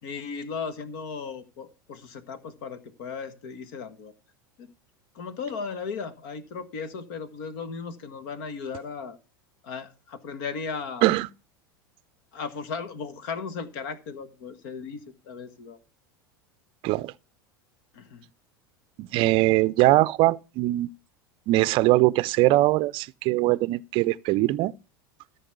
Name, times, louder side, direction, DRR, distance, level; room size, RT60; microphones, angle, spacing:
voice 1, 0.0-4.1 4.6-4.7 5.1-9.2 9.6-11.1 12.3-15.8 17.9-18.2, left 5 dB, 65° left, 1.6 m, -36 dB
voice 2, 19.0-20.9 21.5-24.7, right 18 dB, 50° right, 0.5 m, -21 dB
13.5 x 5.4 x 6.8 m
hypercardioid pair, 90°, 12 cm